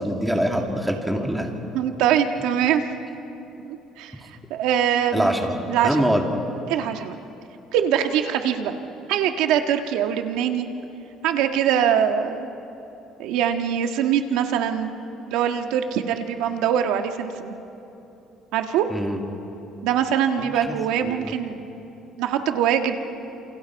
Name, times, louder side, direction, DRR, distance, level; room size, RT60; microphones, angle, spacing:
voice 1, 0.0-1.5 5.1-5.6 5.8-6.2 18.9-19.2 20.4-20.7 21.0-21.3, equal, 5° right, 1 dB, 2.2 m, -24 dB
voice 2, 1.7-2.8 3.6-4.1 4.5-5.4 5.7-6.1 6.7-7.2 7.7-8.7 9.1-10.7 11.2-12.5 13.2-14.9 15.3-17.6 18.5-18.9 19.8-21.6 22.2-23.0, right 9 dB, 85° right, 6 dB, 1.5 m, -23 dB
28.5 x 28.0 x 4.7 m, 3.0 s
cardioid pair, 145°, 0 cm